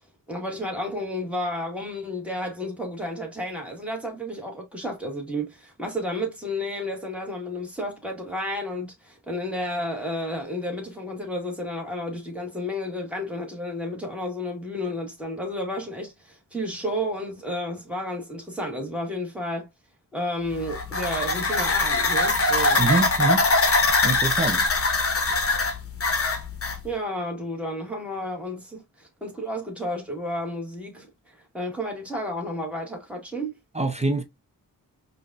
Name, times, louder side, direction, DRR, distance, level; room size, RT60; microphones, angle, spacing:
voice 1, 0.3-19.7 20.1-22.9 26.8-33.5, left 1 dB, 5° right, 1.9 m, -31 dB
sound 1, 20.5-26.8, left 3 dB, 40° left, 0.9 m, -22 dB
voice 2, 22.8-23.5 24.0-24.7 33.7-34.2, right 3 dB, 20° right, 0.8 m, -24 dB
5.1 x 2.7 x 2.5 m
wide cardioid pair, 95°, 34 cm